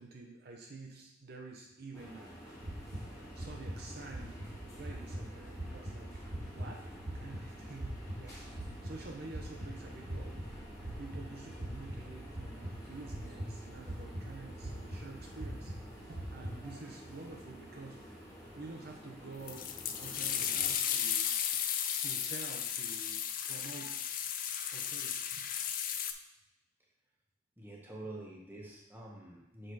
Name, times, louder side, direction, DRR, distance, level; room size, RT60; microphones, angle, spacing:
voice 1, 0.0-2.6 3.3-4.4 4.8-6.2 6.5-6.9 7.1-8.4 8.8-10.4 11.0-15.7 16.0-18.1 18.5-19.7 20.0-21.6 22.0-24.0 24.7-25.5 28.0-28.1, right 3 dB, 50° right, 0 dB, 0.7 m, -49 dB
sound 1, 1.9-20.7, equal, 15° left, 1.7 m, -51 dB
sound 2, 2.6-16.6, right 1 dB, 70° right, 1.6 m, -43 dB
sound 3, 19.5-26.1, left 9 dB, 45° left, 0.4 m, -35 dB
voice 2, 27.6-29.7, right 1 dB, 10° right, -3 dB, 1.2 m, -47 dB
6.5 x 3.8 x 4.7 m, 0.96 s
head